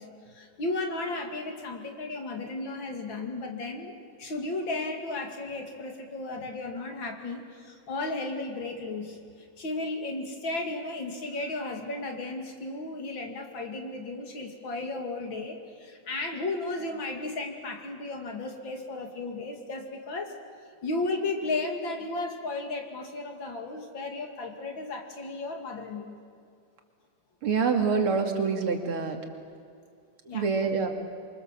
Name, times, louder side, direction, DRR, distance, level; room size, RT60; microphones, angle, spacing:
voice 1, 0.0-9.2 9.6-20.3 20.8-26.2 30.3-30.4, left 2 dB, 65° left, 3 dB, 3.1 m, -34 dB
voice 2, 27.4-29.2 30.3-30.9, right 5 dB, 85° right, 4 dB, 3.1 m, -26 dB
27.0 x 23.5 x 7.5 m, 2.3 s
omnidirectional pair, 2.3 m